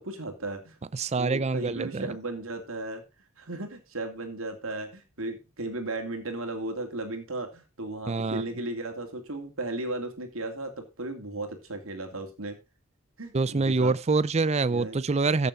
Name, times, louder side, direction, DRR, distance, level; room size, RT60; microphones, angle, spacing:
voice 1, 0.0-0.8 1.1-3.0 3.4-12.6 13.2-13.9 14.4-15.0, right 2 dB, 65° right, 2.8 m, -35 dB
voice 2, 0.9-2.1 8.1-8.4 13.3-15.5, right 3 dB, 30° right, 0.5 m, -25 dB
14.5 x 6.8 x 4.0 m
head